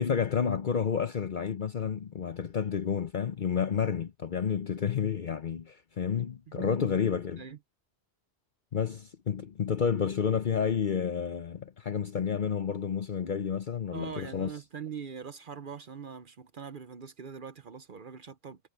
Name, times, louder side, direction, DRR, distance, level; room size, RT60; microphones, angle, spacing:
voice 1, 0.0-7.4 8.7-14.5, left 7 dB, 50° left, 0.9 m, -30 dB
voice 2, 13.9-18.6, right 6 dB, 55° right, 0.9 m, -42 dB
omnidirectional pair, 1.1 m